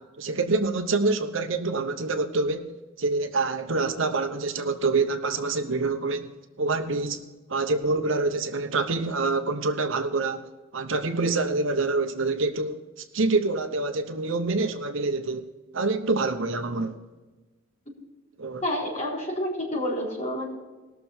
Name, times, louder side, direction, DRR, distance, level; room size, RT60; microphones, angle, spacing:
voice 1, 0.2-2.7 3.0-6.3 6.6-7.2 7.5-10.5 10.7-15.5 15.7-16.9 18.4-18.6, right 3 dB, 65° right, 0.9 m, -26 dB
voice 2, 18.6-20.4, left 1 dB, 35° left, 4.2 m, -29 dB
19.5 x 6.8 x 4.4 m
head